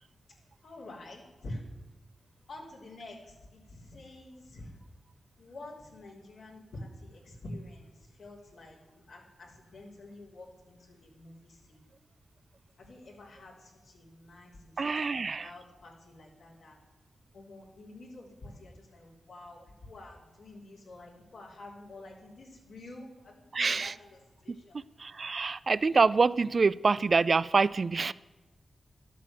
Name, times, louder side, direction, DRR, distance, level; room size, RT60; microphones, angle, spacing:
voice 1, 0.6-1.6 2.5-4.8 5.4-11.8 12.8-16.8 17.3-24.8, left 2 dB, 85° left, -4 dB, 3.5 m, -48 dB
voice 2, 14.8-15.5 23.5-23.9 24.5-28.1, right 4 dB, 50° right, 19 dB, 0.4 m, -26 dB
12.0 x 8.4 x 7.5 m, 1.2 s
cardioid pair, 65°, 0 cm